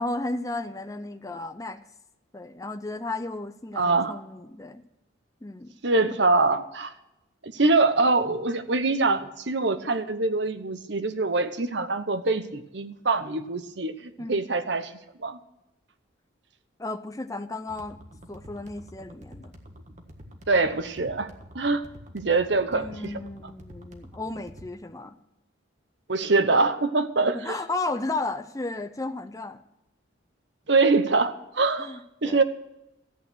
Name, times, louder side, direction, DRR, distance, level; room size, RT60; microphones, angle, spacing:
voice 1, 0.0-1.8 2.3-4.8 5.4-5.7 14.2-14.5 16.8-18.0 18.3-19.5 22.7-25.2 27.3-29.6 31.8-32.4, left 2 dB, 15° left, 9 dB, 0.6 m, -34 dB
voice 2, 3.8-4.2 5.8-6.9 7.4-14.9 15.2-15.4 20.5-21.3 21.5-21.8 22.1-23.0 26.1-27.5 30.7-32.4, right 3 dB, 60° right, 10 dB, 1.0 m, -24 dB
sound 1, 17.7-24.7, equal, 35° right, 1.5 m, -48 dB
14.0 x 9.0 x 6.3 m, 0.90 s
head